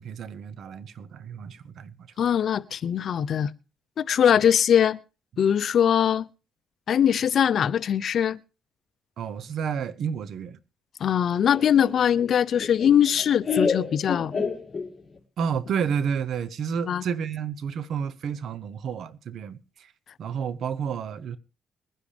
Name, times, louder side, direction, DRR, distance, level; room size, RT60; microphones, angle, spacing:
voice 1, 0.0-1.9 9.2-10.6 15.4-19.9 20.2-21.4, right 7 dB, 65° right, 1.0 m, -30 dB
voice 2, 2.2-3.5 4.0-5.0 5.4-6.3 6.9-8.4 11.0-14.4 16.9-17.0, left 9 dB, 60° left, 0.7 m, -21 dB
Laughter, 11.5-15.2, left 5 dB, 35° left, 2.4 m, -29 dB
21.5 x 10.5 x 3.4 m
cardioid pair, 90°, 0 cm